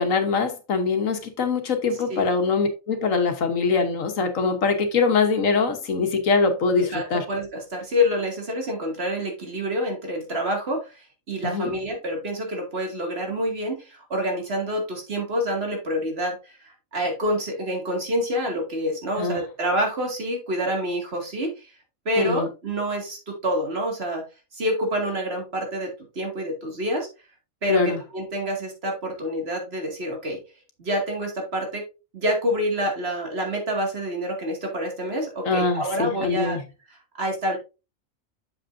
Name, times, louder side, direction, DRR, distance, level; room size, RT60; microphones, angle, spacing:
voice 1, 0.0-7.2 11.4-11.8 19.2-19.4 22.2-22.5 27.7-28.0 35.4-36.6, left 4 dB, 75° left, 1.5 m, -23 dB
voice 2, 6.9-21.7 22.1-24.2 24.5-27.1 27.6-30.4 30.8-31.8 32.1-36.6 37.1-37.6, equal, 50° right, 2.4 m, -27 dB
7.7 x 7.2 x 2.6 m
omnidirectional pair, 1.4 m